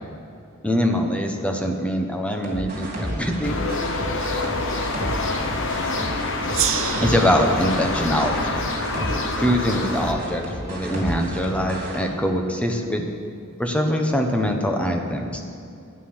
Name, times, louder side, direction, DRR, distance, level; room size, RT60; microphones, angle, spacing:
voice 1, 0.6-3.6 7.0-8.6 9.4-13.1 13.6-15.4, equal, 5° left, 3 dB, 1.1 m, -23 dB
sound 1, 2.3-12.0, equal, 40° right, 3.1 m, -31 dB
sound 2, 3.4-10.1, left 3 dB, 65° left, 1.1 m, -27 dB
Gong, 6.5-9.7, right 10 dB, 65° right, 0.8 m, -31 dB
12.5 x 9.7 x 6.3 m, 2.5 s
head